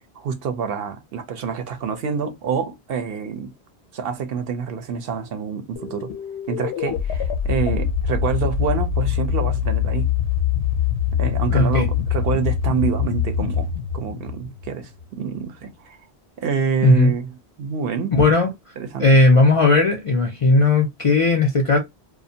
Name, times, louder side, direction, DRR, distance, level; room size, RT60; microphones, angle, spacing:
voice 1, 0.2-3.5 3.9-6.1 6.5-10.1 11.2-13.7 13.9-16.0 16.4-17.3 17.6-18.1 18.8-19.1, right 6 dB, 65° right, 0.7 m, -27 dB
sound 1, 5.8-15.1, left 9 dB, 80° left, 0.9 m, -24 dB
voice 2, 11.5-11.9 16.8-17.1 18.1-18.5 19.0-21.8, left 2 dB, 45° left, 0.4 m, -16 dB
2.4 x 2.1 x 2.7 m
omnidirectional pair, 1.1 m